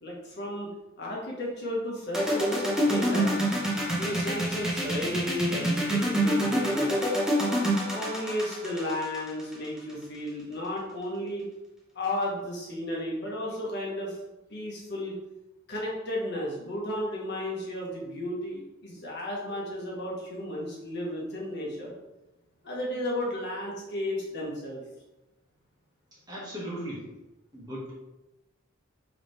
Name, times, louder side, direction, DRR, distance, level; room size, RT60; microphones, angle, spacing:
voice 1, 0.0-0.7 1.0-3.4 3.9-6.9 7.9-11.4 11.9-14.2 14.5-15.2 15.7-21.9 22.6-24.8, left 1 dB, 55° left, -3 dB, 1.2 m, -33 dB
sound 1, 2.1-9.9, right 1 dB, 5° right, 1.0 m, -26 dB
voice 2, 26.3-27.1 27.5-27.9, equal, 20° right, -7 dB, 1.5 m, -37 dB
4.8 x 3.4 x 3.2 m, 1.0 s
head